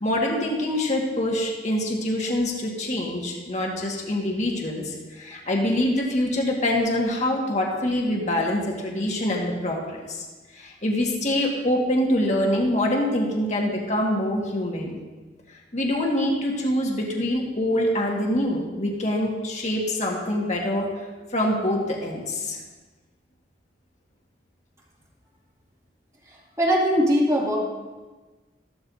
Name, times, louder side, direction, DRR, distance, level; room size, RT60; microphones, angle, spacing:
voice 1, 0.0-10.3 10.5-15.0 15.5-20.9 21.3-22.6, left 1 dB, 40° left, -1 dB, 1.7 m, -25 dB
voice 2, 26.3-27.6, equal, 15° right, -4 dB, 2.4 m, -21 dB
14.5 x 12.5 x 2.7 m, 1.3 s
head